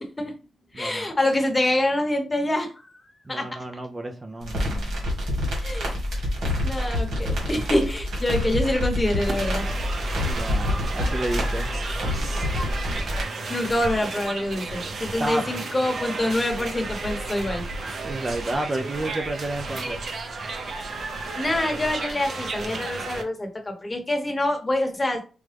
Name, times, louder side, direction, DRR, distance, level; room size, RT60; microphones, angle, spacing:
voice 1, 0.0-0.3 0.7-3.0 3.3-3.5 5.6-5.9 6.6-9.6 13.5-17.6 21.4-25.2, left 1 dB, 20° left, 0.9 m, -26 dB
voice 2, 0.7-1.1 3.3-5.2 10.2-11.7 15.2-15.5 18.0-20.0, right 2 dB, 25° right, 0.4 m, -31 dB
sound 1, 4.4-13.2, left 1 dB, 85° right, 1.7 m, -27 dB
sound 2, 9.3-23.2, right 3 dB, 55° right, 0.7 m, -33 dB
4.8 x 2.1 x 3.3 m
cardioid pair, 110°, 0 cm